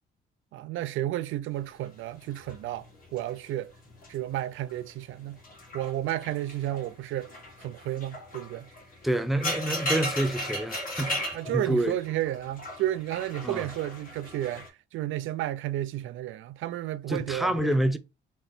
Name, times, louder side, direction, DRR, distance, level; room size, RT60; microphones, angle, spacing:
voice 1, 0.5-3.7 4.1-5.4 5.7-7.3 7.6-8.7 11.3-17.7, right 13 dB, 80° right, 0.5 m, -32 dB
sound 1, 1.8-4.2 4.5-4.9 5.4-14.7, left 1 dB, 45° left, 2.0 m, -37 dB
voice 2, 9.0-11.9 13.4-13.7 17.1-18.0, right 1 dB, ahead, 0.7 m, -28 dB
4.2 x 3.0 x 3.5 m
cardioid pair, 90°, 20 cm